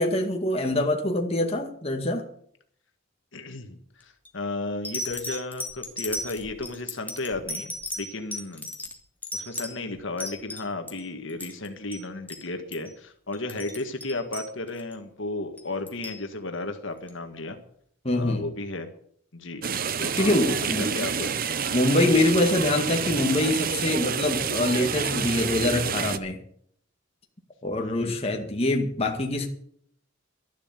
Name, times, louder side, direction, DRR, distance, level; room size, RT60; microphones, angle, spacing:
voice 1, 0.0-2.3 18.0-18.5 20.1-20.9 21.7-26.4 27.6-29.5, left 1 dB, 30° left, 2 dB, 2.0 m, -24 dB
voice 2, 3.3-8.7 9.3-17.6 18.1-18.9 19.3-19.6 20.0-21.3 27.8-28.3, left 2 dB, 65° left, 5 dB, 1.8 m, -34 dB
sound 1, 4.0-4.3 4.8-11.0 11.3-11.7 11.9-12.0 12.3-12.5 12.7-12.9 13.3-14.9 15.6-16.2 17.1-17.2, left 1 dB, 10° left, 2.0 m, -36 dB
sound 2, 19.6-26.2, right 6 dB, 45° right, 0.8 m, -28 dB
12.5 x 11.5 x 7.4 m, 0.63 s
head